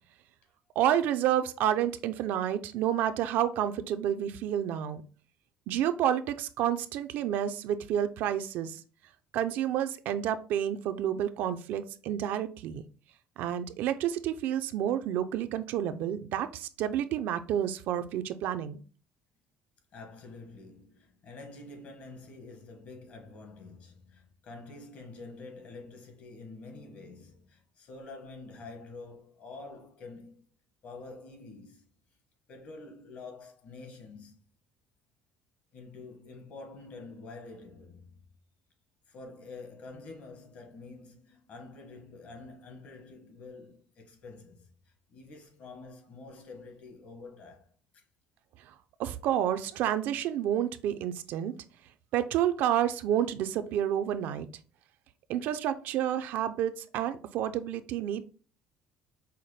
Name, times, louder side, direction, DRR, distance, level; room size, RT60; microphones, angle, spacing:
voice 1, 0.8-5.0 5.7-8.8 9.3-12.8 13.4-18.8 48.7-48.8 49.0-51.5 52.1-54.5 55.3-58.2, right 10 dB, 70° right, 0.4 m, -29 dB
voice 2, 19.9-30.4 30.8-31.9 32.5-34.4 35.7-38.2 39.1-48.0, left 3 dB, 50° left, 1.2 m, -47 dB
5.6 x 2.1 x 3.2 m
cardioid pair, 125°, 3 cm